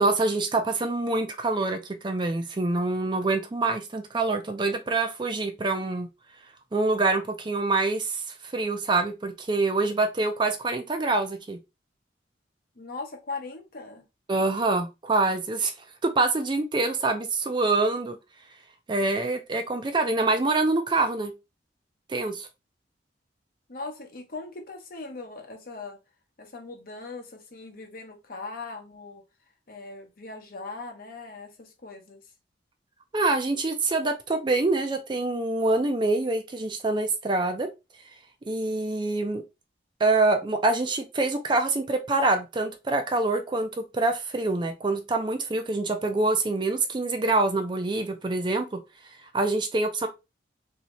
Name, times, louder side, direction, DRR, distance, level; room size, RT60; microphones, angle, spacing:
voice 1, 0.0-6.1 6.7-11.6 14.3-15.7 16.0-18.2 18.9-21.3 22.1-22.5 33.1-37.7 38.5-39.4 40.0-48.8 49.3-50.1, right 3 dB, 25° right, 0.4 m, -25 dB
voice 2, 12.8-14.0 23.7-26.0 26.4-29.2 29.7-32.2, left 3 dB, 50° left, 0.8 m, -39 dB
3.2 x 2.7 x 2.9 m
head